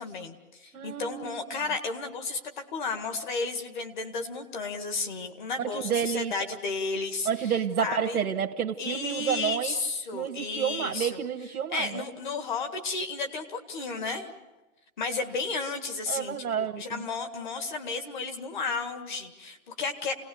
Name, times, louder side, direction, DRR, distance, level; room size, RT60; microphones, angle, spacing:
voice 1, 0.0-7.5 7.8-8.2 8.8-11.2 11.7-14.3 15.0-20.1, left 4 dB, 35° left, 6 dB, 1.9 m, -33 dB
voice 2, 0.7-1.6 5.6-6.3 7.2-9.7 10.1-12.0 16.1-17.0, right 8 dB, 85° right, 2 dB, 1.5 m, -30 dB
29.0 x 18.5 x 7.0 m, 1.1 s
hypercardioid pair, 175°, 43 cm